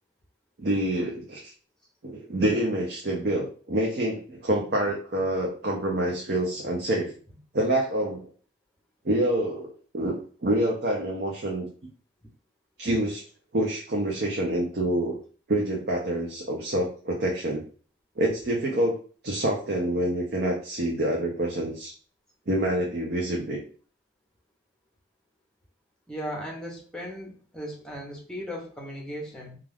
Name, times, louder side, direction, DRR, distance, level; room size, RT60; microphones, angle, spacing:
voice 1, 0.6-1.5 2.0-7.1 7.5-8.3 9.0-11.7 12.8-13.2 13.5-15.2 15.5-17.6 18.2-19.0 19.2-21.9 22.5-23.6, right 1 dB, 55° right, -1 dB, 0.5 m, -27 dB
voice 2, 26.1-29.6, equal, 5° left, -2 dB, 0.7 m, -37 dB
2.3 x 2.3 x 3.3 m, 0.40 s
head